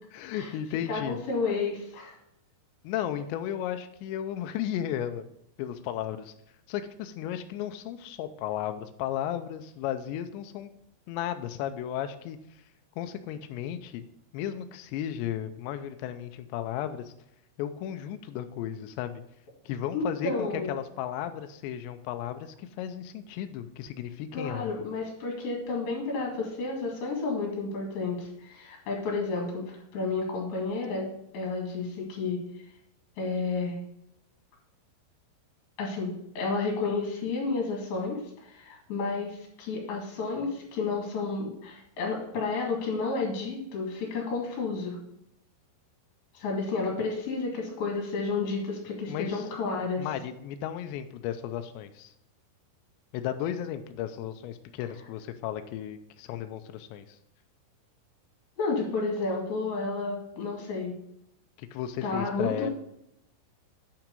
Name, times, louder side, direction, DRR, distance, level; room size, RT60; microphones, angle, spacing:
voice 1, 0.1-1.2 2.8-5.3 5.6-6.3 6.7-10.7 11.1-12.4 13.0-14.1 14.3-17.1 17.6-19.2 19.7-24.9 49.1-49.5 50.0-52.1 53.1-57.2 61.6-62.7, left 10 dB, 80° left, 8 dB, 2.7 m, -34 dB
voice 2, 0.9-2.2 19.9-20.7 24.3-31.1 31.3-32.4 33.2-33.8 35.8-45.0 46.3-50.1 58.6-61.0 62.0-62.7, left 3 dB, 60° left, -1 dB, 3.5 m, -31 dB
8.7 x 5.9 x 5.3 m, 0.77 s
omnidirectional pair, 5.5 m